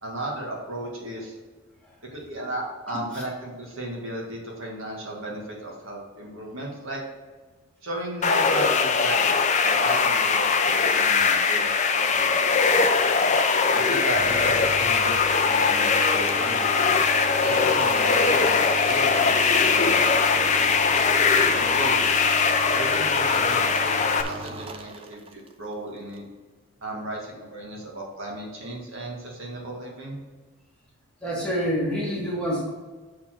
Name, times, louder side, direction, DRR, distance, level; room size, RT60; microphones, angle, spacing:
voice 1, 0.0-1.4 2.1-7.0 7.8-9.3 9.6-11.6 11.9-12.5 13.7-16.9 17.4-21.0 21.5-22.4 22.7-26.2 26.8-30.2, right 1 dB, 60° right, -2 dB, 1.9 m, -35 dB
sound 1, 8.2-24.2, left 5 dB, 30° left, 0.5 m, -21 dB
sound 2, 14.1-25.5, right 2 dB, 25° right, 0.4 m, -37 dB
voice 2, 31.2-32.7, equal, 5° left, -6 dB, 1.8 m, -27 dB
7.4 x 4.5 x 6.0 m, 1.3 s
head